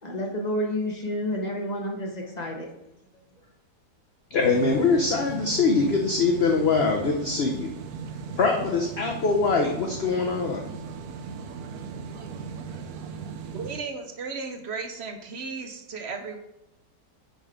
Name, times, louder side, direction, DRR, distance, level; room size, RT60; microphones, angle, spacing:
voice 1, 0.0-2.7, equal, 25° left, 0 dB, 1.2 m, -30 dB
voice 2, 4.3-7.7 8.3-10.7, left 4 dB, 50° left, 1 dB, 0.8 m, -23 dB
sound 1, 4.4-13.8, right 5 dB, 70° right, 1.1 m, -38 dB
voice 3, 13.5-16.4, right 4 dB, 50° right, 6 dB, 0.9 m, -35 dB
9.1 x 4.1 x 4.9 m, 0.87 s
omnidirectional pair, 1.8 m